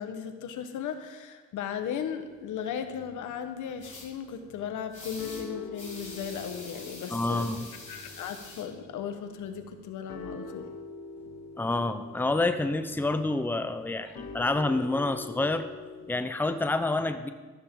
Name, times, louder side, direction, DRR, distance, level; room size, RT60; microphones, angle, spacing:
voice 1, 0.0-7.5 7.9-10.7 14.0-14.2, left 8 dB, 80° left, 7 dB, 1.3 m, -36 dB
sound 1, 2.2-3.3 3.7-4.0 4.4-4.9 5.2-16.1, left 3 dB, 60° left, 2.2 m, -45 dB
sound 2, 3.8-4.1 4.9-5.4 5.7-8.6, left 3 dB, 25° left, 4.5 m, -45 dB
voice 2, 7.1-7.7 11.6-15.7 16.1-17.3, left 2 dB, 5° left, 9 dB, 0.7 m, -28 dB
13.0 x 13.0 x 3.8 m, 1.3 s
cardioid pair, 90°, 30 cm